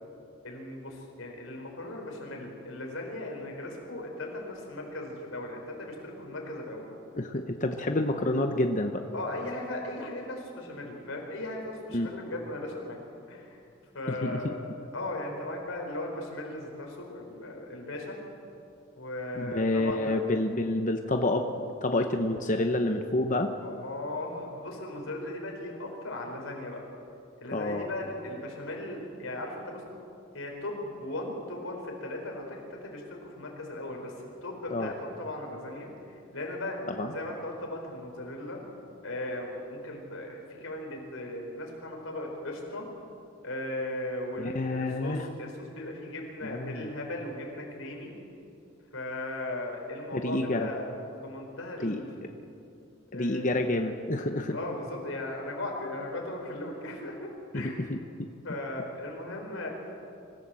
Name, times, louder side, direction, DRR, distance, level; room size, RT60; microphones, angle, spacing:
voice 1, 0.4-6.9 9.1-13.0 13.3-13.6 13.9-14.6 14.9-18.2 19.0-20.2 23.6-26.8 27.4-29.8 30.3-34.1 34.4-35.9 36.3-38.6 39.0-42.9 43.4-48.1 48.9-52.1 53.1-53.6 54.5-57.8 58.4-59.7, left 1 dB, 90° left, 1 dB, 4.8 m, -37 dB
voice 2, 7.1-9.0 11.9-12.1 14.1-14.4 19.3-21.5 21.8-23.5 27.5-27.9 34.7-34.9 36.9-37.1 44.4-45.3 46.4-46.9 50.1-50.7 51.8-52.0 53.1-54.6 57.5-58.0, left 2 dB, 40° left, 5 dB, 0.9 m, -28 dB
25.5 x 15.0 x 7.7 m, 2.6 s
head